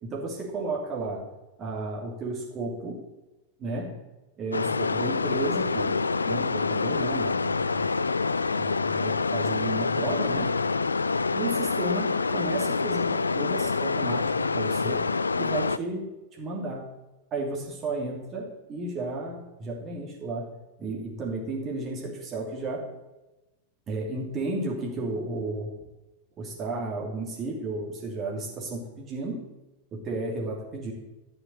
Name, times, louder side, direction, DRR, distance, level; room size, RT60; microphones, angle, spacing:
voice 1, 0.0-1.3 1.6-3.0 3.6-4.0 4.4-7.9 8.5-10.6 11.3-15.1 15.4-16.9 17.3-20.5 20.8-22.9 23.9-25.7 26.4-29.5 29.9-30.9, right 2 dB, 30° right, -2 dB, 2.8 m, -33 dB
sound 1, 4.5-15.8, left 4 dB, 75° left, 0.3 m, -26 dB
12.0 x 6.5 x 7.0 m, 1.0 s
figure-of-eight pair, 90°, 0 cm